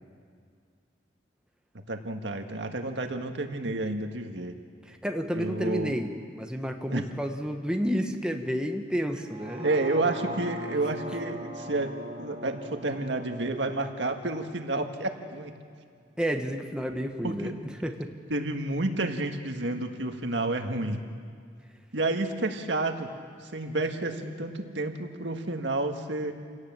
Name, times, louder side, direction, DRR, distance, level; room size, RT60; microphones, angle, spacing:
voice 1, 1.9-4.5 5.3-5.9 6.9-7.0 9.6-11.9 12.2-15.5 17.2-17.6 18.3-21.0 21.9-23.1 23.5-26.3, right 2 dB, 85° right, 5 dB, 1.7 m, -30 dB
voice 2, 4.9-9.7 16.2-17.5 17.8-18.1, equal, 5° right, 3 dB, 1.3 m, -30 dB
sound 1, 9.2-15.4 15.8-15.9, equal, 35° right, 3.1 m, -40 dB
28.0 x 18.0 x 7.5 m, 2.2 s
head